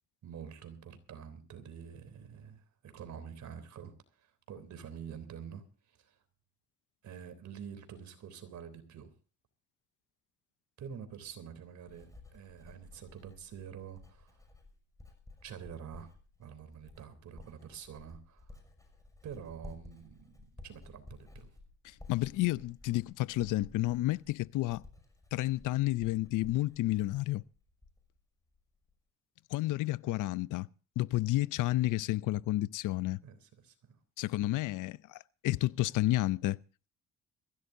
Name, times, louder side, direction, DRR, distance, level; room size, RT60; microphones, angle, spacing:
voice 1, 0.2-6.1 7.0-9.1 10.8-14.4 15.4-16.1 16.4-18.6 19.2-20.4 20.6-21.5 33.2-34.0, right 8 dB, 70° right, 3.4 m, -47 dB
Writing, 11.7-28.2 28.5-28.9, left 2 dB, 10° left, 5.9 m, -55 dB
voice 2, 21.8-24.8 25.3-27.4 29.5-30.7 31.0-33.2 34.2-36.6, left 17 dB, 85° left, 0.6 m, -31 dB
22.5 x 15.5 x 2.7 m
cardioid pair, 90°, 30 cm